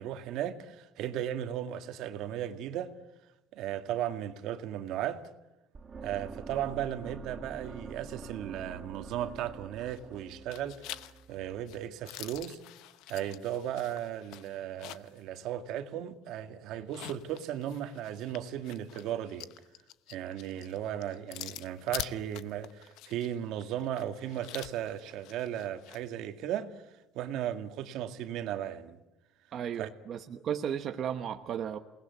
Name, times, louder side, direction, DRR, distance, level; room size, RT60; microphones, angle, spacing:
voice 1, 0.0-2.9 3.5-5.2 6.0-12.6 13.1-19.5 20.1-29.0 29.8-29.9, right 11 dB, 65° right, 1.9 m, -36 dB
sound 1, 5.7-11.8, right 4 dB, 25° right, 1.5 m, -46 dB
sound 2, 9.8-10.2 10.5-15.2 15.6-15.7 16.8-26.0, left 15 dB, 75° left, 0.9 m, -46 dB
voice 2, 29.5-31.8, right 8 dB, 40° right, 1.0 m, -34 dB
28.5 x 19.5 x 9.4 m
cardioid pair, 170°, 0 cm